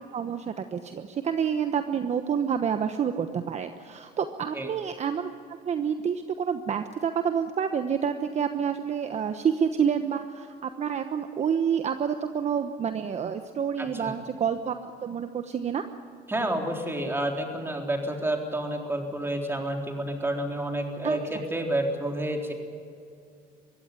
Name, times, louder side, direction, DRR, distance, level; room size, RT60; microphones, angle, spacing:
voice 1, 0.1-5.3 5.6-15.8 21.0-21.2, right 7 dB, 40° right, 8 dB, 1.1 m, -28 dB
voice 2, 13.8-14.2 16.3-22.5, right 1 dB, 15° right, 2 dB, 3.9 m, -29 dB
22.5 x 16.5 x 9.6 m, 2.4 s
cardioid pair, 110°, 17 cm